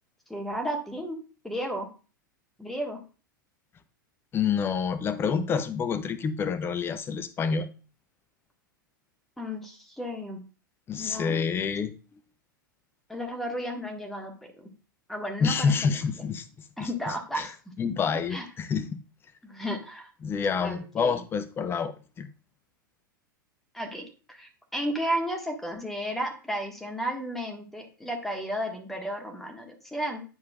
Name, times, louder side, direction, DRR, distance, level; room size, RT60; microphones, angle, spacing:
voice 1, 0.3-1.9 2.6-3.0 9.4-10.4 11.0-11.4 13.1-14.7 15.1-15.9 16.8-17.5 18.3-18.4 19.4-20.1 20.6-21.2 23.7-30.2, equal, ahead, 1.5 m, -33 dB
voice 2, 4.3-7.7 10.9-11.9 15.4-16.4 16.8-16.9 17.4-17.5 17.8-18.9 20.2-22.3, left 6 dB, 20° left, 0.7 m, -28 dB
10.5 x 4.7 x 2.4 m
figure-of-eight pair, 95°, 11 cm